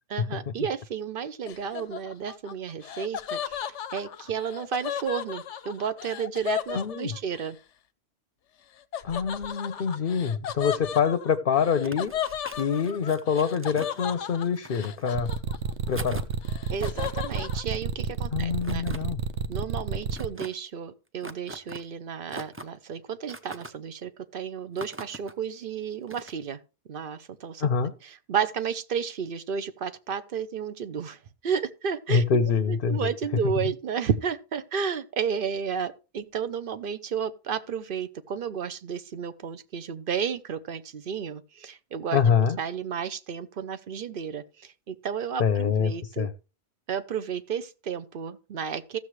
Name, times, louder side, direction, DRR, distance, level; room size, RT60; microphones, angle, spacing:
voice 1, 0.1-7.6 16.7-18.8 19.5-26.6 26.9-27.7 28.0-32.2 32.7-42.2 42.6-46.3 46.9-49.0, right 7 dB, 55° right, 0.9 m, -32 dB
Laughter, 1.5-7.5 8.9-15.9 16.2-17.6, left 9 dB, 90° left, 1.0 m, -35 dB
voice 2, 6.7-7.1 9.0-12.1 12.6-15.3 15.9-16.2 18.3-19.2 27.6-27.9 32.1-33.1 42.1-42.6 45.4-46.3, left 6 dB, 55° left, 0.8 m, -25 dB
sound 1, 11.8-14.0 14.5-15.3 15.9-16.3 16.7-17.1 18.6-19.0 20.1-20.5 21.2-21.8 22.3-22.8 23.3-23.7 24.8-25.3 26.1-26.3, right 1 dB, 15° right, 0.5 m, -41 dB
sound 2, 15.1-20.3, right 6 dB, 80° right, 1.0 m, -30 dB
15.0 x 6.9 x 3.2 m
omnidirectional pair, 1.2 m